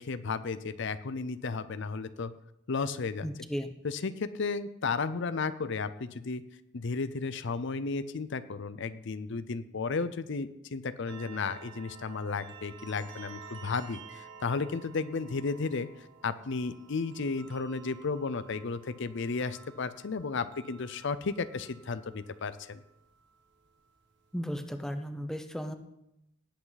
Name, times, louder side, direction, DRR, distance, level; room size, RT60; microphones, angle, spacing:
voice 1, 0.0-2.3 2.7-3.3 3.8-6.4 6.7-22.8, left 4 dB, 65° left, 13 dB, 0.6 m, -34 dB
voice 2, 3.2-3.7 24.3-25.7, equal, ahead, 7 dB, 0.8 m, -35 dB
sound 1, 11.1-24.4, right 6 dB, 65° right, 1.7 m, -52 dB
18.0 x 8.5 x 4.1 m, 0.83 s
head